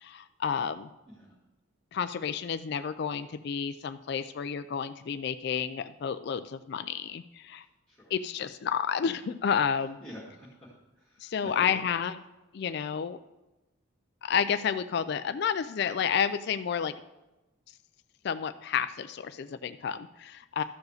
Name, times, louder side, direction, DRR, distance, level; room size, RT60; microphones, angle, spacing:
voice 1, 0.0-0.9 1.9-7.6 8.1-10.0 11.2-12.2 12.5-13.2 14.2-16.9 18.2-20.6, left 7 dB, 50° left, 11 dB, 0.3 m, -30 dB
voice 2, 10.0-10.7 11.0-11.8, equal, 10° left, -8 dB, 1.9 m, -46 dB
12.5 x 4.8 x 6.4 m, 1.0 s
head